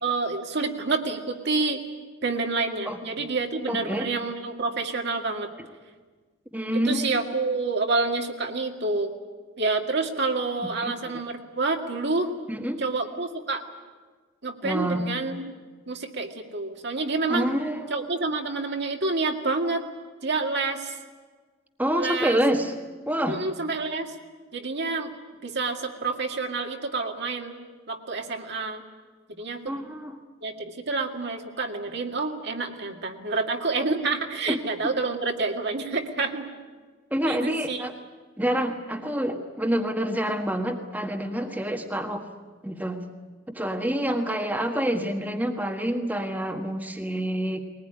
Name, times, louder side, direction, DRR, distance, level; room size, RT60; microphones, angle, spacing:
voice 1, 0.0-1.8 2.2-5.5 6.8-9.1 9.6-12.3 12.8-13.6 14.4-15.5 15.9-17.5 17.9-19.9 20.2-20.9 22.0-22.4 23.3-24.1 24.5-25.1 25.4-27.5 27.9-28.8 29.3-29.6 30.4-36.5 37.3-37.9, right 3 dB, 60° right, 3 dB, 2.2 m, -28 dB
voice 2, 2.9-3.3 3.7-4.1 6.5-7.2 10.8-11.2 12.5-12.8 14.6-15.0 17.3-18.1 21.8-22.7 23.1-23.4 29.7-30.1 34.5-34.6 37.1-37.9 38.4-42.3 42.6-43.0 43.5-47.6, equal, 10° right, 3 dB, 1.5 m, -27 dB
21.0 x 20.0 x 10.0 m, 1.4 s
head